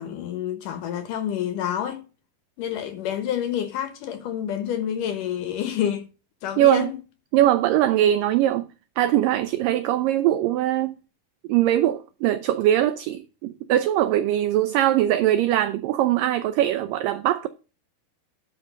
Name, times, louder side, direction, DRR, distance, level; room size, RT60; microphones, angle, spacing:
voice 1, 0.0-2.0 2.6-6.1 6.4-7.0, left 10 dB, 70° left, 2.3 m, -28 dB
voice 2, 6.6-6.9 7.3-8.7 9.0-11.0 11.5-17.5, right 12 dB, 85° right, 1.9 m, -21 dB
12.0 x 5.2 x 5.2 m
omnidirectional pair, 4.6 m